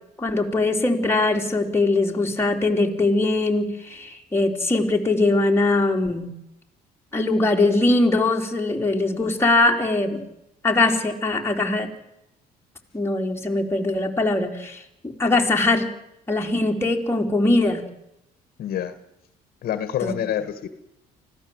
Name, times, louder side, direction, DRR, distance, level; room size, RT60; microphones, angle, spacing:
voice 1, 0.2-6.3 7.1-10.2 10.6-11.9 12.9-15.9 16.3-17.8 20.0-20.1, left 2 dB, 15° left, 1 dB, 3.5 m, -21 dB
voice 2, 18.6-18.9 19.6-20.7, left 10 dB, 65° left, 11 dB, 1.7 m, -27 dB
24.5 x 16.0 x 7.9 m, 0.84 s
cardioid pair, 110°, 17 cm